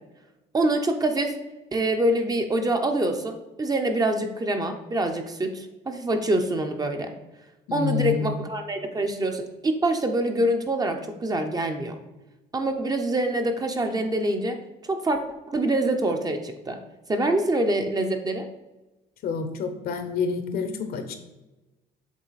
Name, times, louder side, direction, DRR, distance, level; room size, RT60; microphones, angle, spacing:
voice 1, 0.5-1.4 1.7-7.1 7.7-12.0 12.5-15.2 15.5-16.8 17.1-18.5, right 1 dB, 20° right, 5 dB, 0.7 m, -25 dB
voice 2, 7.7-8.3 19.2-21.2, left 6 dB, 65° left, 7 dB, 1.0 m, -28 dB
7.3 x 3.9 x 4.1 m, 1.1 s
cardioid pair, 110°, 17 cm